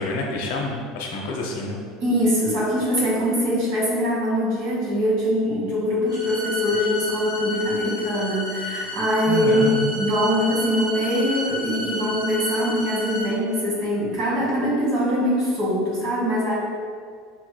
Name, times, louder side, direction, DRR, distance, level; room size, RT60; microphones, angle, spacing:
voice 1, 0.0-1.8 9.3-9.9, left 3 dB, 75° left, 0 dB, 0.6 m, -28 dB
voice 2, 2.0-16.5, equal, 45° right, -6 dB, 1.4 m, -23 dB
sound 1, 6.1-13.2, left 1 dB, 15° right, 1.3 m, -31 dB
5.6 x 3.1 x 2.2 m, 2.1 s
cardioid pair, 175°, 0 cm